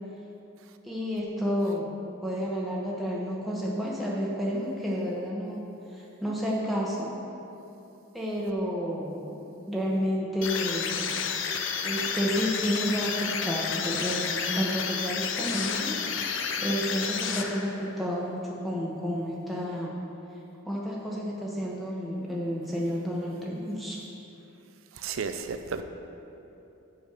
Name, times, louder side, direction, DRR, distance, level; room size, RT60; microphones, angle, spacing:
voice 1, 0.8-1.9 2.2-5.7 5.9-7.1 8.1-9.3 9.7-11.0 11.8-20.0 20.6-24.0, equal, ahead, -5 dB, 0.8 m, -30 dB
sound 1, 10.4-17.9, left 6 dB, 65° left, 0.6 m, -31 dB
voice 2, 25.0-25.8, right 5 dB, 80° right, 8 dB, 0.5 m, -33 dB
8.2 x 5.1 x 6.6 m, 2.9 s
head